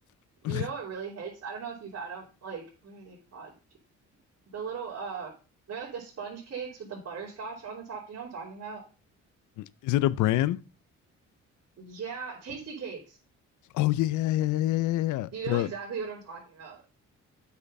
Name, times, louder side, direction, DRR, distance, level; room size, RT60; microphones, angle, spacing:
voice 1, 0.4-3.5 4.5-5.3 5.7-8.8 11.8-13.2 15.3-16.8, right 6 dB, 60° right, 3.2 m, -38 dB
voice 2, 9.6-10.6 13.7-15.7, left 15 dB, 80° left, 0.5 m, -26 dB
8.1 x 5.7 x 5.2 m
cardioid pair, 90°, 30 cm